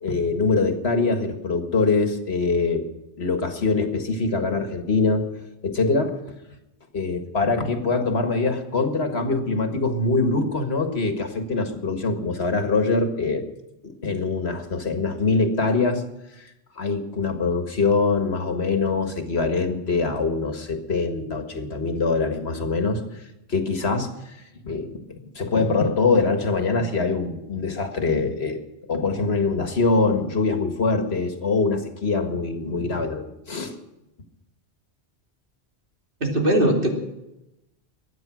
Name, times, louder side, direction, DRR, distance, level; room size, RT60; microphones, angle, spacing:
voice 1, 0.0-2.9 3.2-5.2 5.6-6.2 6.9-13.4 13.8-16.0 16.4-16.5 16.8-23.0 23.5-24.1 24.6-28.6 28.9-33.7, left 3 dB, 70° left, 6 dB, 2.0 m, -23 dB
voice 2, 36.2-36.9, right 1 dB, 55° right, 1 dB, 3.0 m, -20 dB
22.5 x 9.5 x 6.2 m, 0.91 s
omnidirectional pair, 1.1 m